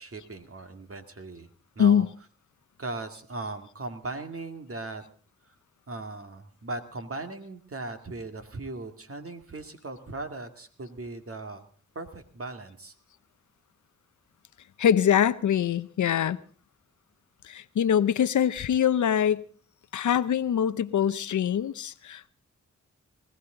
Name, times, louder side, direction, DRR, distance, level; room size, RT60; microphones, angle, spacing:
voice 1, 0.0-1.5 1.8-2.0 2.8-5.0 5.9-11.6 12.0-12.9, right 2 dB, 50° right, 2.1 m, -38 dB
voice 2, 1.8-2.1 14.8-16.4 17.4-19.4 19.9-22.3, left 9 dB, 75° left, 0.7 m, -23 dB
20.0 x 16.0 x 3.9 m
cardioid pair, 45°, 30 cm